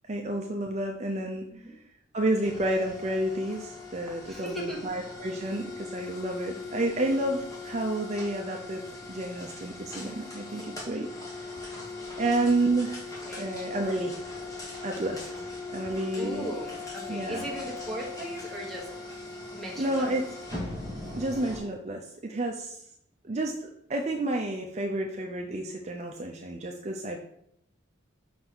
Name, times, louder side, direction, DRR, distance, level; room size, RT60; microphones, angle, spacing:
voice 1, 0.1-1.5 2.1-8.8 9.1-11.6 12.2-13.0 13.4-14.1 14.8-16.5 17.1-17.5 19.8-20.3 21.1-22.8 23.2-27.2, right 1 dB, 35° right, 2 dB, 0.5 m, -30 dB
sound 1, 2.4-21.6, left 3 dB, 15° left, 1.5 m, -40 dB
voice 2, 4.3-5.0 12.2-12.5 13.2-13.5 16.1-18.9 19.5-20.0, right 1 dB, ahead, -3 dB, 1.3 m, -38 dB
5.5 x 4.0 x 6.0 m, 0.74 s
head